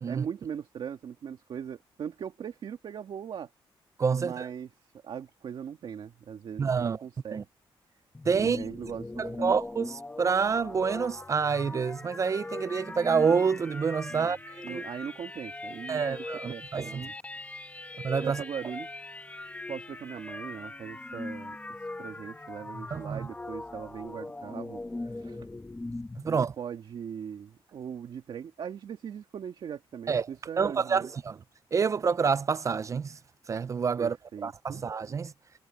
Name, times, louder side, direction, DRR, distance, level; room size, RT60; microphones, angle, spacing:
voice 1, 0.1-3.5 4.1-4.7 5.0-7.5 8.4-9.5 14.1-14.3 14.6-17.1 18.2-18.9 19.7-21.6 22.0-24.8 25.1-25.5 26.2-31.1 34.0-34.8, right 8 dB, 60° right, 2.2 m, -40 dB
voice 2, 4.0-4.5 6.6-7.0 7.3-7.4 8.3-8.6 9.2-14.4 14.7-14.8 15.9-17.0 18.0-18.4 22.9-23.3 26.2-26.5 30.1-30.3 30.6-31.4 31.7-33.2 33.5-34.2 34.4-35.3, right 5 dB, 35° right, 0.4 m, -27 dB
sound 1, 8.1-26.3, left 2 dB, 15° left, 1.3 m, -40 dB
cardioid pair, 135°, 10 cm